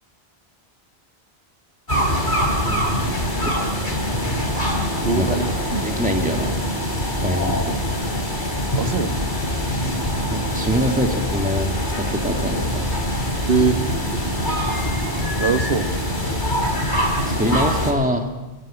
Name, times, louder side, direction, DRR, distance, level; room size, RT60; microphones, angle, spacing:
sound 1, 1.9-17.9, equal, 50° left, 3.4 m, -23 dB
voice 1, 2.7-3.1 3.4-3.5 5.2-5.4 5.8-6.5 7.2-7.8 10.3-11.7 12.0-12.8 17.4-18.3, equal, 5° right, 4 dB, 2.2 m, -24 dB
voice 2, 4.9-5.5 8.8-9.1 13.5-14.2 14.5-14.6 15.0-15.1 15.4-15.9, right 5 dB, 70° right, 9 dB, 1.5 m, -22 dB
23.5 x 16.0 x 8.8 m, 1.2 s
omnidirectional pair, 1.1 m